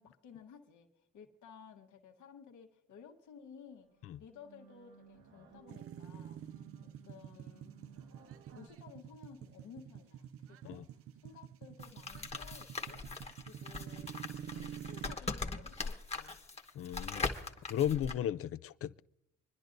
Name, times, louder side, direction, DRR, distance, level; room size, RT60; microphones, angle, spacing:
voice 1, 0.0-3.9 4.2-6.6 7.0-7.7 8.1-16.4, left 6 dB, 75° left, 1.4 m, -56 dB
sound 1, 3.3-3.4 3.7-8.7, right 6 dB, 85° right, 1.8 m, -60 dB
sound 2, 5.7-15.1, right 9 dB, 50° right, 0.4 m, -48 dB
sound 3, 11.8-18.2, left 3 dB, 20° left, 1.2 m, -40 dB
voice 2, 16.8-17.3 17.7-19.0, left 10 dB, 50° left, 0.4 m, -35 dB
26.5 x 10.5 x 2.6 m
cardioid pair, 90°, 30 cm